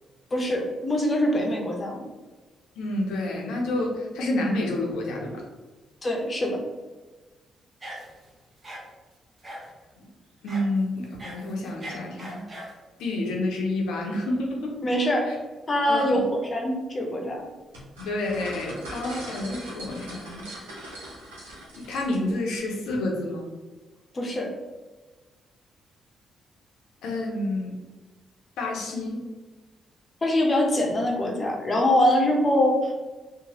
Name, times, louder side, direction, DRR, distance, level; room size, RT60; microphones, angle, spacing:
voice 1, 0.3-2.0 6.0-6.6 14.8-15.3 15.7-17.4 24.1-24.5 30.2-32.9, left 1 dB, 40° left, 1 dB, 0.7 m, -23 dB
voice 2, 2.8-5.4 10.0-10.1 10.4-12.4 13.0-14.8 15.3-15.4 15.8-16.2 18.0-20.4 21.7-23.5 27.0-27.7 28.6-29.2, left 1 dB, 75° left, 0 dB, 0.6 m, -29 dB
sound 1, 7.8-8.3 8.6-8.8 9.4-9.7 10.5-10.7 11.0-12.8, right 1 dB, 35° right, 0.8 m, -40 dB
sound 2, 17.7-22.4, right 1 dB, 90° right, 0.6 m, -41 dB
3.0 x 2.1 x 2.8 m, 1.3 s
hypercardioid pair, 45°, 0 cm